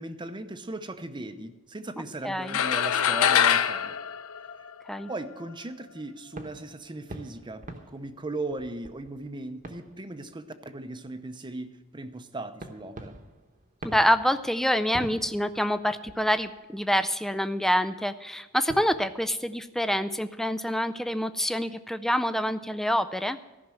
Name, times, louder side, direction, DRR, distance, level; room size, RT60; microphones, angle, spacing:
voice 1, 0.0-4.0 5.1-13.2, right 2 dB, 20° right, 9 dB, 0.7 m, -38 dB
voice 2, 2.2-2.6 4.9-5.1 13.8-23.4, equal, ahead, 11 dB, 0.4 m, -26 dB
sound 1, 2.5-5.1, left 9 dB, 70° left, 0.5 m, -24 dB
sound 2, 6.4-10.9 11.2-11.4 12.6-17.1 18.4-18.5 18.7-19.7, right 1 dB, 40° right, 1.0 m, -46 dB
14.5 x 6.0 x 7.6 m, 1.2 s
head